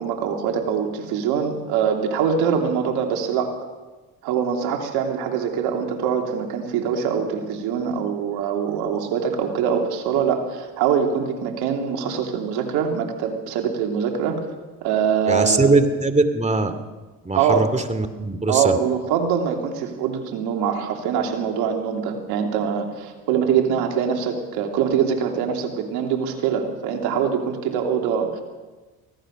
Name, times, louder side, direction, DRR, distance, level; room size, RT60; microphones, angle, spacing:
voice 1, 0.0-3.5 4.2-14.4 14.8-15.7 17.3-17.7 18.5-28.4, right 7 dB, 85° right, 3 dB, 3.2 m, -23 dB
voice 2, 15.3-16.7 17.2-18.8, right 3 dB, 20° right, 9 dB, 2.6 m, -21 dB
24.0 x 17.5 x 6.6 m, 1.2 s
supercardioid pair, 75°, 37 cm